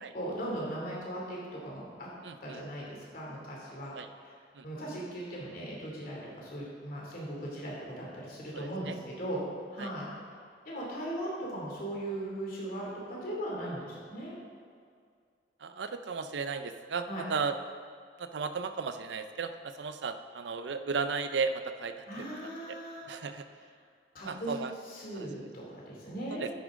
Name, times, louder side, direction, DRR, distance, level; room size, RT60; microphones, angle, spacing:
voice 1, 0.1-2.1 2.4-3.9 4.2-4.3 4.6-9.4 9.7-10.1 10.6-14.3 17.1-17.2 22.1-23.0 24.1-24.5 24.9-26.5, right 1 dB, 50° left, -4 dB, 2.6 m, -38 dB
voice 2, 2.2-2.6 3.9-4.1 4.5-4.6 8.5-9.0 9.8-9.9 15.6-17.5 18.2-22.3 22.7-22.8 23.1-23.4 24.3-24.7 25.1-25.3 26.4-26.5, right 5 dB, 70° right, 9 dB, 0.5 m, -35 dB
10.0 x 9.0 x 3.7 m, 2.2 s
head